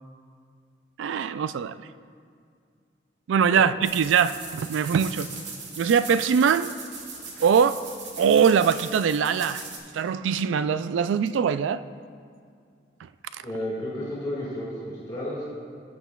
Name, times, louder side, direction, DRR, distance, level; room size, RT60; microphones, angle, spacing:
voice 1, 1.0-1.8 3.3-5.3 5.8-6.7 7.4-7.8 8.2-9.6 9.9-11.8, right 7 dB, 90° right, 14 dB, 0.3 m, -22 dB
sound 1, 3.8-9.8, right 4 dB, 75° right, 1.6 m, -39 dB
voice 2, 13.4-15.4, left 1 dB, 20° left, -7 dB, 1.8 m, -32 dB
17.5 x 8.2 x 2.3 m, 2.2 s
head